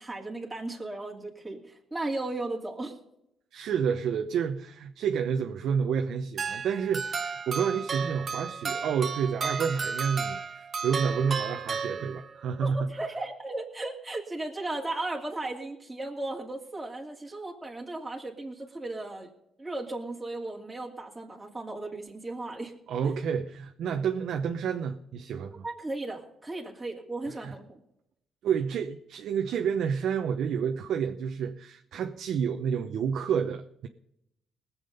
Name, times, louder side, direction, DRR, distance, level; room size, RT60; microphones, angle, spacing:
voice 1, 0.0-3.0 12.6-19.3 19.6-22.7 25.6-27.8, right 2 dB, 10° right, 2.7 m, -36 dB
voice 2, 3.5-12.9 22.9-25.6 27.4-27.5 28.4-33.9, right 7 dB, 75° right, 0.9 m, -29 dB
sound 1, 6.4-12.5, right 5 dB, 45° right, 0.9 m, -33 dB
19.5 x 7.4 x 5.3 m
cardioid pair, 90°, 0 cm